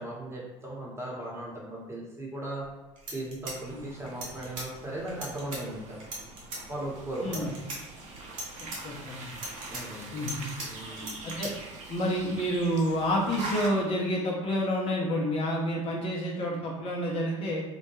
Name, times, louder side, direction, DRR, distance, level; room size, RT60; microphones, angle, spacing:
voice 1, 0.0-2.7 3.1-6.0 6.7-7.5 9.7-10.2 10.6-11.1, right 1 dB, 15° right, -4 dB, 1.0 m, -37 dB
sound 1, 2.6-2.7 3.0-4.7 5.1-5.6 6.0-6.6 7.1-7.8 8.2-8.8 9.3-10.7 11.0-11.5, right 2 dB, 90° right, 0.7 m, -38 dB
sound 2, 3.5-13.7, right 2 dB, 45° right, 0.6 m, -43 dB
voice 2, 7.2-7.5 8.8-9.3 10.1-10.5 11.2-11.5 11.9-17.6, equal, 40° left, -3 dB, 0.6 m, -29 dB
2.2 x 2.1 x 3.0 m, 1.2 s
hypercardioid pair, 70°, 16 cm